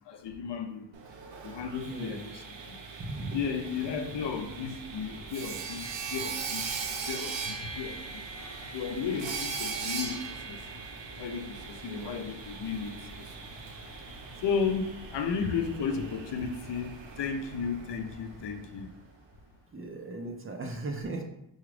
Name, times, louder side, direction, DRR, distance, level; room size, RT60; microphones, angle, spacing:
voice 1, 0.1-0.9 1.4-2.8 3.3-6.7 7.1-8.2 8.7-10.6 11.2-13.3 14.4-18.9, left 6 dB, 70° left, 6 dB, 0.6 m, -34 dB
Sawing, 0.9-18.8, right 5 dB, 75° right, 0.7 m, -40 dB
voice 2, 1.9-2.2 3.0-3.4 11.8-12.2 19.7-21.2, right 2 dB, 30° right, 2 dB, 0.5 m, -37 dB
sound 1, 3.7-19.2, equal, 40° left, 0.8 m, -51 dB
4.8 x 2.4 x 3.2 m, 0.83 s
wide cardioid pair, 110°, 45 cm